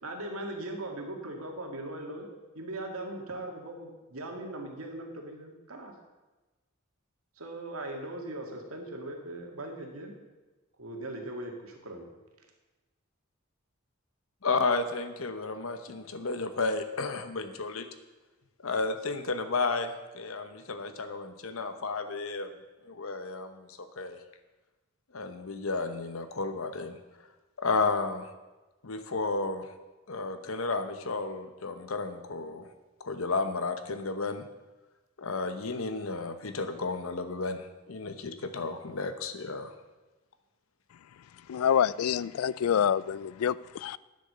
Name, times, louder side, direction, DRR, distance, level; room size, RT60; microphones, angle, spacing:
voice 1, 0.0-2.3 2.5-5.9 7.4-10.1 10.8-12.1, right 1 dB, 80° right, 2 dB, 2.0 m, -39 dB
voice 2, 14.4-17.9 18.6-22.5 22.8-24.2 25.1-27.0 27.6-28.3 28.8-29.7 30.1-32.7 33.0-34.4 35.2-39.7, left 3 dB, 70° left, 9 dB, 1.0 m, -32 dB
voice 3, 41.5-44.0, left 8 dB, 85° left, 20 dB, 0.4 m, -27 dB
9.8 x 7.9 x 6.8 m, 1.1 s
head